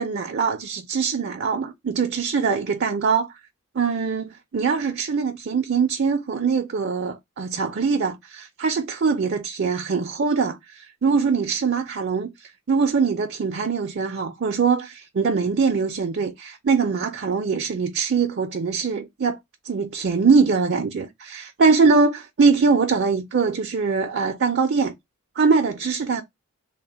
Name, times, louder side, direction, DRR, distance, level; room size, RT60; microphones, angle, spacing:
voice 1, 0.0-3.3 3.7-19.4 19.6-24.9 25.4-26.2, right 5 dB, 50° right, 0.5 m, -22 dB
3.4 x 2.1 x 4.1 m
head